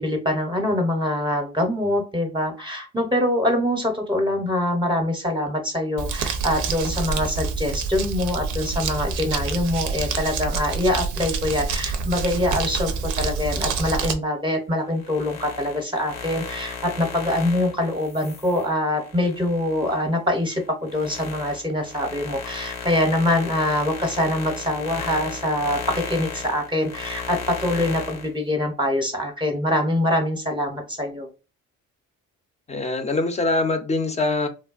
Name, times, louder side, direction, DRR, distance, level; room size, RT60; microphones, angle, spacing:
voice 1, 0.0-31.3, left 1 dB, 15° right, 0.7 m, -24 dB
Crumpling crinkling, 6.0-14.1, right 5 dB, 80° right, 0.5 m, -27 dB
sound 1, 14.9-20.0 20.5-28.3, left 6 dB, 80° left, 0.8 m, -35 dB
voice 2, 32.7-34.5, left 2 dB, 20° left, 0.5 m, -23 dB
3.1 x 2.2 x 2.3 m
cardioid pair, 90°, 30 cm